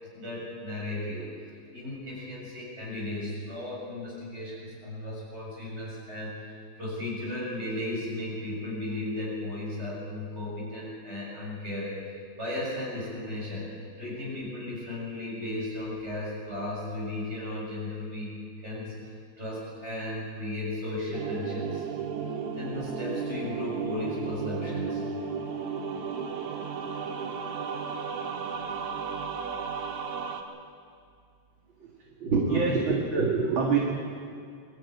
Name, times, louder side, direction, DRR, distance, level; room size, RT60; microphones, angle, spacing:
voice 1, 0.0-21.9 22.3-25.1 28.7-28.9 32.2-32.8, left 2 dB, 20° right, -4 dB, 7.6 m, -35 dB
sound 1, 21.1-30.4, right 6 dB, 70° right, 2.6 m, -34 dB
voice 2, 32.2-33.8, right 5 dB, 45° right, -1 dB, 2.5 m, -25 dB
23.5 x 13.0 x 9.8 m, 2.3 s
omnidirectional pair, 3.3 m